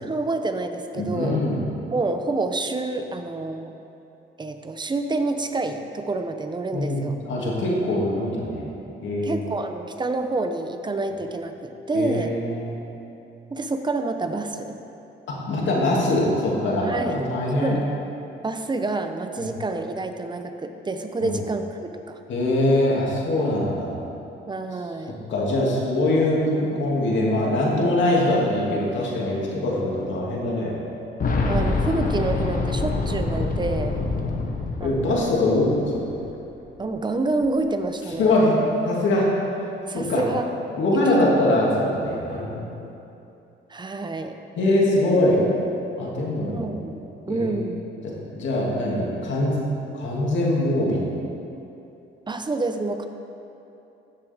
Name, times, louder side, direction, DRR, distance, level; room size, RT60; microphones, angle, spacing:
voice 1, 0.0-1.4 1.9-3.7 4.4-7.2 9.2-12.3 13.5-14.8 16.8-17.8 18.4-22.2 24.5-25.2 31.4-34.0 34.8-35.3 36.8-38.4 39.9-40.5 40.9-41.4 43.7-44.4 46.5-47.8 52.3-53.1, right 2 dB, 20° right, 7 dB, 0.7 m, -28 dB
voice 2, 1.0-1.6 6.7-8.7 9.0-9.4 11.9-12.7 15.3-17.8 19.4-19.5 21.2-21.4 22.3-23.9 25.3-30.7 33.9-34.1 34.8-36.2 38.2-38.5 38.8-39.3 39.9-40.2 40.8-42.7 44.6-45.4 46.0-46.6 47.3-47.6 48.0-49.6 49.9-51.0, left 1 dB, 70° left, -4 dB, 2.5 m, -23 dB
Boom, 31.2-35.9 36.2-36.3 37.4-37.5, left 3 dB, 45° left, 1.2 m, -25 dB
15.5 x 7.0 x 3.6 m, 2.8 s
cardioid pair, 90°, 20 cm